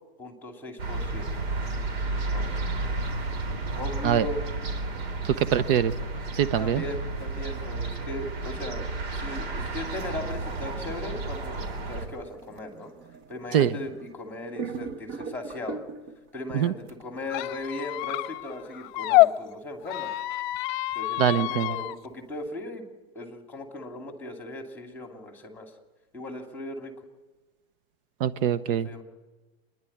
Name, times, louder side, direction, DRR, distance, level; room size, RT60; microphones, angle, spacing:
voice 1, 0.2-1.3 2.3-2.6 3.7-4.4 6.6-8.9 9.2-12.9 13.3-15.8 16.3-20.1 20.9-22.8 23.1-25.7 26.1-26.9 28.8-29.0, left 1 dB, 5° left, 3 dB, 2.7 m, -38 dB
sound 1, 0.8-12.0, right 2 dB, 85° right, 4.0 m, -32 dB
voice 2, 5.2-5.9 6.3-6.8 13.5-13.7 16.5-16.7 21.2-21.7 28.2-28.9, right 9 dB, 65° right, 17 dB, 0.9 m, -23 dB
sound 2, 11.2-14.2 14.6-16.3 16.9-17.0, right 5 dB, 35° right, 1.2 m, -40 dB
Squeak, 17.3-19.3 19.8-22.0, left 19 dB, 50° left, 0.7 m, -26 dB
27.0 x 11.0 x 10.0 m, 1.2 s
supercardioid pair, 155°, 30 cm